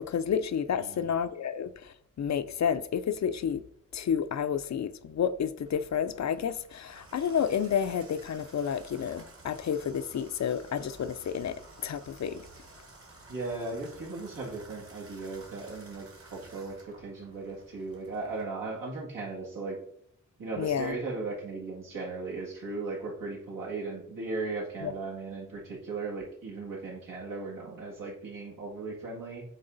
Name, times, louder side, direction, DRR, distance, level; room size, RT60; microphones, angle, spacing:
voice 1, 0.0-3.6 3.9-12.4 20.6-21.0 24.8-24.9, left 8 dB, 60° left, 0.4 m, -30 dB
Water tap faucet / Bathtub (filling or washing), 5.6-18.4, right 2 dB, 45° right, 1.4 m, -53 dB
voice 2, 13.3-19.8 20.4-29.4, right 3 dB, 85° right, 2.2 m, -37 dB
7.9 x 3.8 x 3.8 m
wide cardioid pair, 105°, 32 cm